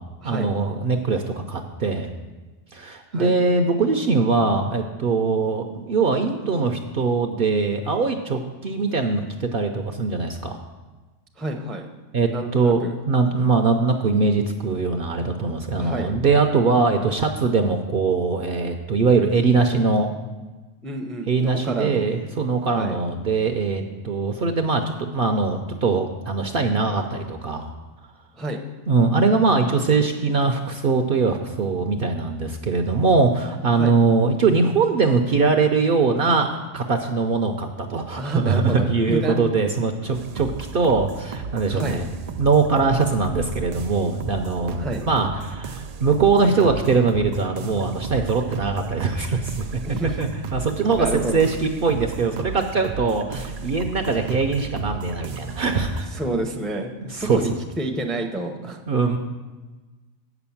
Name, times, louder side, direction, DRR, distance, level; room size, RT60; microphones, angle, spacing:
voice 1, 0.2-2.1 2.7-10.6 12.1-20.1 21.3-27.7 28.9-42.0 42.4-49.7 50.2-56.2 57.1-57.4 58.9-59.2, right 4 dB, 55° right, 5 dB, 0.7 m, -22 dB
voice 2, 11.4-11.9 12.3-13.0 15.8-16.1 20.8-22.1 22.8-23.0 28.4-28.6 33.8-33.9 38.2-39.5 41.7-42.0 44.8-45.0 49.8-50.2 50.9-51.4 56.1-58.8, right 1 dB, ahead, 3 dB, 0.6 m, -29 dB
sound 1, 40.1-56.0, right 5 dB, 85° right, 0.3 m, -34 dB
8.2 x 6.0 x 7.0 m, 1.2 s
omnidirectional pair, 1.3 m